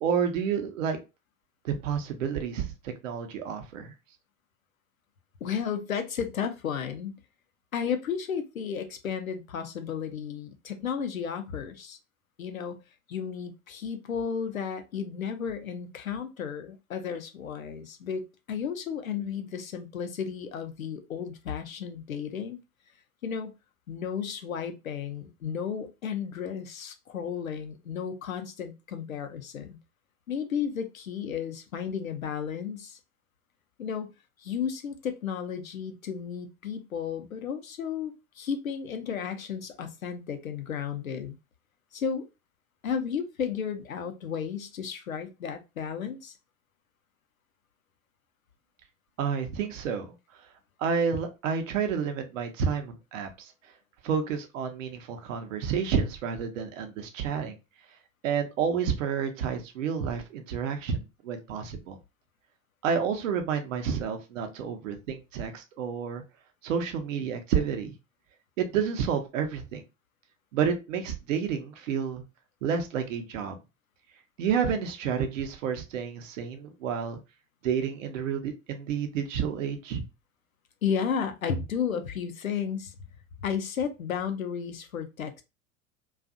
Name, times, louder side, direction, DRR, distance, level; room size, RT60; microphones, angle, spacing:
voice 1, 0.0-1.0 1.6-3.9 49.2-50.1 50.8-53.5 54.0-57.6 58.2-62.0 62.8-66.2 66.6-67.9 68.6-69.8 70.5-72.2 72.6-73.6 74.4-77.2 77.6-80.0, right 7 dB, 70° right, 0.6 m, -30 dB
voice 2, 5.4-7.2 7.7-12.0 12.4-12.8 13.1-22.6 23.2-23.5 23.9-29.8 30.3-33.0 33.8-34.1 34.4-41.4 41.9-42.2 42.8-46.4 80.8-82.9 83.4-85.4, left 7 dB, 85° left, 0.5 m, -33 dB
2.5 x 2.3 x 2.4 m
figure-of-eight pair, 80°, 41 cm